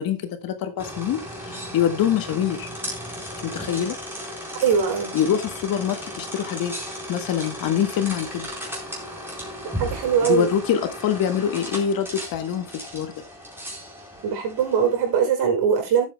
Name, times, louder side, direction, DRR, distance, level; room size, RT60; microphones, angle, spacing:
voice 1, 0.0-2.7 3.4-4.0 5.1-6.8 7.1-8.5 10.2-13.1, left 9 dB, 50° left, 1.7 m, -25 dB
sound 1, 0.8-15.2, equal, 5° right, 4.3 m, -35 dB
voice 2, 4.6-5.1 9.8-10.5 14.2-16.0, right 7 dB, 60° right, 5.8 m, -21 dB
17.5 x 8.2 x 2.2 m
cardioid pair, 150°, 46 cm